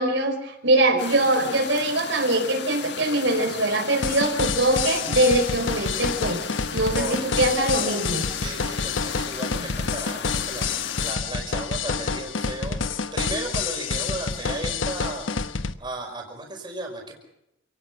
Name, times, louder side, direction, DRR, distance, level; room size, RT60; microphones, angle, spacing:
voice 1, 0.0-6.4 6.7-8.2 9.5-9.6, right 1 dB, 70° right, 3 dB, 4.8 m, -22 dB
sound 1, 1.0-11.1, left 6 dB, 60° left, 1.8 m, -35 dB
sound 2, 4.0-15.7, left 5 dB, 85° left, 1.1 m, -28 dB
voice 2, 6.9-8.0 8.3-15.3 15.8-17.1, right 2 dB, 25° right, 1 dB, 5.4 m, -35 dB
29.0 x 18.0 x 6.0 m, 0.85 s
head